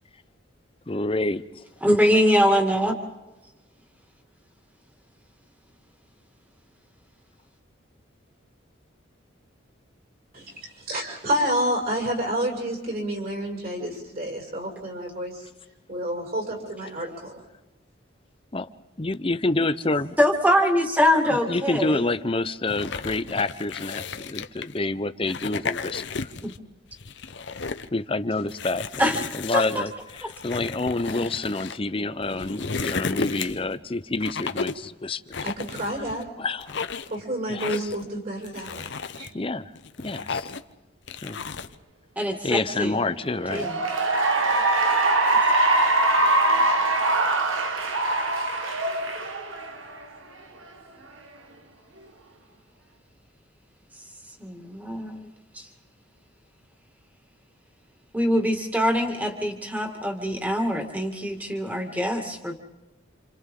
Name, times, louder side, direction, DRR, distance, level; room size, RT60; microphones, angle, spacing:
voice 1, 0.9-1.6 18.5-18.7 19.0-20.2 21.3-26.3 27.9-29.9 30.2-35.3 36.4-36.7 37.5-37.7 39.3-39.7 40.0-40.5 41.2-41.4 42.4-43.7, left 2 dB, 25° left, 12 dB, 0.7 m, -28 dB
voice 2, 1.8-2.9 20.2-22.1 26.4-26.5 29.0-29.2 29.5-29.8 42.2-43.0 43.5-43.8 54.4-55.3 55.5-55.7 58.1-62.5, equal, 10° right, 3 dB, 2.2 m, -23 dB
voice 3, 10.3-15.5 15.9-17.4 21.4-21.5 35.4-36.3 37.1-39.3, right 1 dB, 50° right, -2 dB, 5.9 m, -29 dB
sound 1, 22.7-24.8 25.2-26.6 26.9-27.9 28.5-31.8 32.2-33.7 34.2-34.9 35.3-36.2 36.6-37.2 37.6-38.0 38.4-39.3 39.8-40.7 41.1-41.7, left 5 dB, 60° left, 0.8 m, -34 dB
Cheering / Applause, 43.4-50.0, right 2 dB, 85° right, 1.6 m, -22 dB
30.0 x 27.5 x 3.8 m, 1.1 s
head